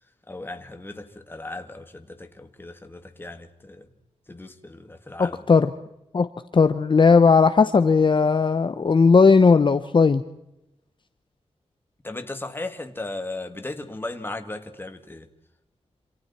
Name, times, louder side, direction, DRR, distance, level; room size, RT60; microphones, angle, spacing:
voice 1, 0.3-3.9 4.3-5.6 12.0-15.3, left 2 dB, 20° left, 2.1 m, -36 dB
voice 2, 5.2-5.7 6.1-6.3 6.5-10.2, left 5 dB, 45° left, 0.9 m, -17 dB
27.5 x 27.5 x 4.4 m
wide cardioid pair, 140°, 12 cm